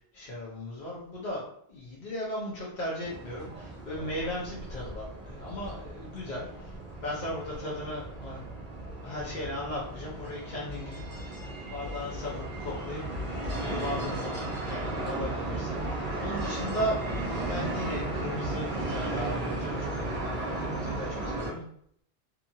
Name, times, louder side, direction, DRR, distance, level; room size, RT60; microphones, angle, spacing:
voice 1, 0.1-1.4 1.7-6.8 7.0-8.4 9.0-17.0 17.5-21.6, left 1 dB, 50° left, -6 dB, 0.8 m, -37 dB
sound 1, 3.0-21.5, right 2 dB, 40° right, 0.8 m, -35 dB
2.8 x 2.4 x 2.7 m, 0.65 s
omnidirectional pair, 1.1 m